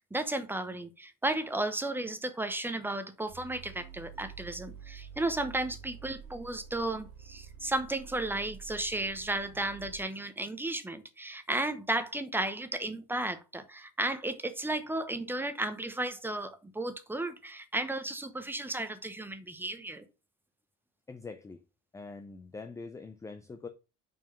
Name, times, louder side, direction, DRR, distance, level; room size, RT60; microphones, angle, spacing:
voice 1, 0.1-20.0, right 2 dB, 5° right, 0.8 m, -34 dB
sound 1, 3.3-10.0, right 7 dB, 75° right, 2.4 m, -49 dB
voice 2, 21.1-21.6 21.9-23.7, left 4 dB, 10° left, 0.4 m, -44 dB
6.1 x 4.5 x 5.5 m
cardioid pair, 145°, 33 cm